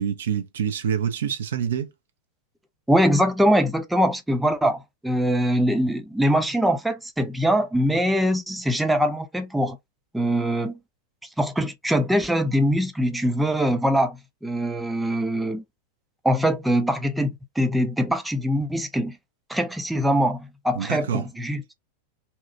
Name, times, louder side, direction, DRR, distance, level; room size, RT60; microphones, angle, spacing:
voice 1, 0.0-1.9 20.8-21.3, right 8 dB, 60° right, 0.6 m, -26 dB
voice 2, 2.9-9.8 10.1-10.8 11.4-15.6 16.2-19.2 19.5-21.7, equal, 5° right, 0.5 m, -23 dB
2.8 x 2.3 x 2.6 m
figure-of-eight pair, 90°, 0 cm